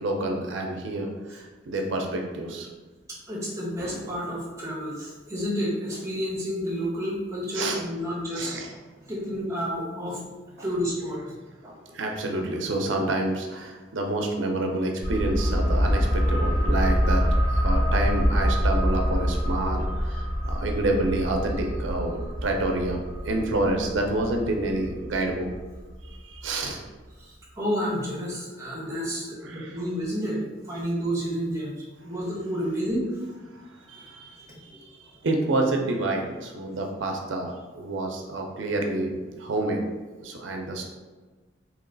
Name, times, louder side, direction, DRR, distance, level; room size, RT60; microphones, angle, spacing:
voice 1, 0.0-2.7 7.5-7.8 8.4-8.7 11.9-25.5 26.0-26.8 29.4-29.8 33.9-39.8 40.2-40.8, right 2 dB, 90° right, 2 dB, 0.5 m, -28 dB
voice 2, 3.1-8.6 9.1-10.2 10.6-11.2 11.6-11.7 27.2-31.7 32.0-33.0 34.5-34.6, equal, 15° right, -5 dB, 1.1 m, -30 dB
sound 1, 15.0-26.4 26.7-26.8, equal, 90° left, 1.2 m, -26 dB
3.0 x 3.0 x 3.8 m, 1.3 s
head